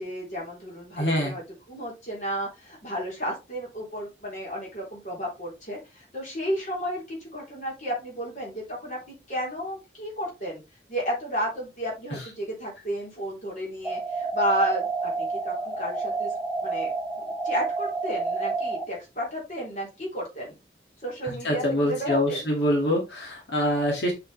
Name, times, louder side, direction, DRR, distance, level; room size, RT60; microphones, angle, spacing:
voice 1, 0.0-1.4 1.7-10.6 10.9-16.3 16.6-20.5 21.0-22.5, equal, 45° left, -3 dB, 3.8 m, -32 dB
voice 2, 1.0-1.3 21.2-24.1, equal, 85° left, -1 dB, 2.2 m, -25 dB
sound 1, 13.8-18.8, right 4 dB, 5° right, 0.8 m, -29 dB
7.2 x 5.5 x 3.3 m, 0.25 s
head